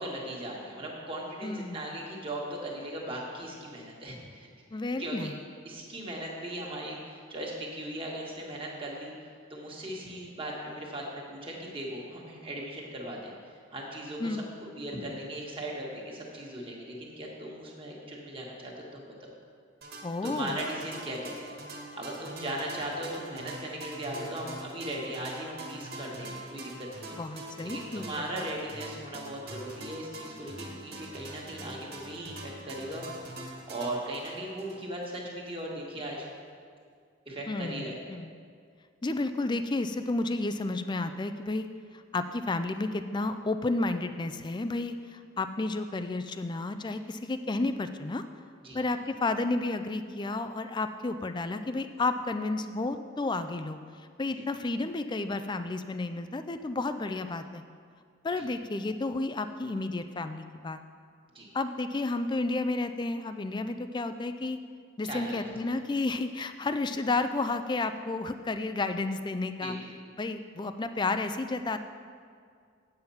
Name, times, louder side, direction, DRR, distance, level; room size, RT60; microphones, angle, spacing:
voice 1, 0.0-4.5 5.0-5.3 5.6-13.3 13.7-14.4 14.7-19.3 20.2-21.6 21.9-27.1 27.6-33.1 33.7-36.3 37.2-38.0 48.6-48.8 54.3-54.5 58.4-58.5 61.3-61.5 65.0-65.4 69.6-69.8, right 1 dB, 25° right, -3 dB, 1.7 m, -38 dB
voice 2, 1.4-1.8 4.7-5.3 14.2-14.4 20.0-20.6 27.1-28.3 37.5-38.3 39.0-41.7 42.1-48.2 48.7-53.8 54.2-57.6 58.2-60.8 61.5-64.6 65.0-69.7 70.2-71.8, left 2 dB, 20° left, 9 dB, 0.4 m, -31 dB
sound 1, 19.8-35.2, right 2 dB, 50° right, 1.7 m, -44 dB
8.8 x 7.8 x 5.6 m, 2.1 s
head